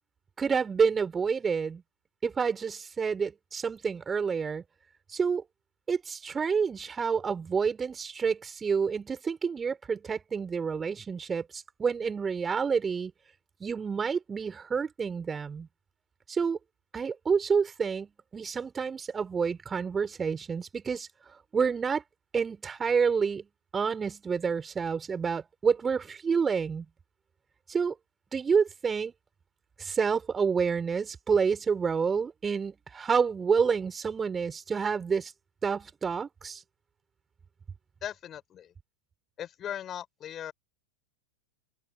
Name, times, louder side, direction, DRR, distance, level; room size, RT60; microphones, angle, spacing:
voice 1, 0.4-1.8 2.2-4.6 5.1-5.4 5.9-13.1 13.6-15.7 16.3-16.6 16.9-21.1 21.5-22.0 22.3-23.5 23.7-26.9 27.7-27.9 28.3-29.1 29.8-35.3 35.6-36.6, right 6 dB, 15° right, 5.9 m, -28 dB
voice 2, 38.0-38.7 39.4-40.5, left 10 dB, 30° left, 4.9 m, -38 dB
figure-of-eight pair, 90°, 0 cm